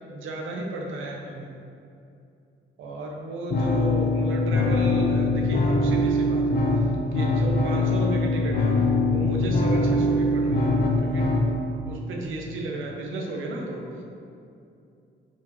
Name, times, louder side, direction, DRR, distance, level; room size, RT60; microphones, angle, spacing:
voice 1, 0.1-1.5 2.8-8.7 9.1-11.3 11.8-14.0, right 2 dB, 80° right, 0 dB, 1.2 m, -33 dB
sound 1, 3.5-11.5, left 2 dB, 50° left, 1.2 m, -22 dB
5.7 x 5.0 x 4.7 m, 2.6 s
cardioid pair, 90°, 20 cm